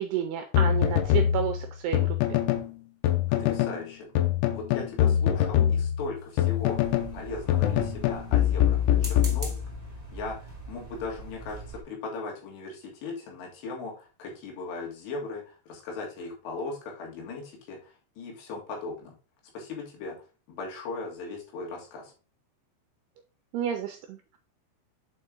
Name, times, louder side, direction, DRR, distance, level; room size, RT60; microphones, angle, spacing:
voice 1, 0.0-2.4 23.5-24.4, right 9 dB, 80° right, 6 dB, 2.3 m, -31 dB
sound 1, 0.5-2.7 3.0-3.8 4.2-7.2 7.5-9.9, left 11 dB, 90° left, 3.1 m, -24 dB
voice 2, 3.3-4.1 4.5-6.8 7.1-9.5 10.1-19.1 19.5-20.1 20.5-22.1, left 3 dB, 70° left, -1 dB, 3.8 m, -38 dB
sound 2, 6.2-7.0 8.8-9.8 10.5-10.7 11.1-11.2 11.4-11.7, right 2 dB, 10° right, 1.3 m, -42 dB
sound 3, 6.7-11.8, right 3 dB, 35° right, 0.8 m, -43 dB
7.5 x 4.6 x 3.7 m, 0.35 s
omnidirectional pair, 5.3 m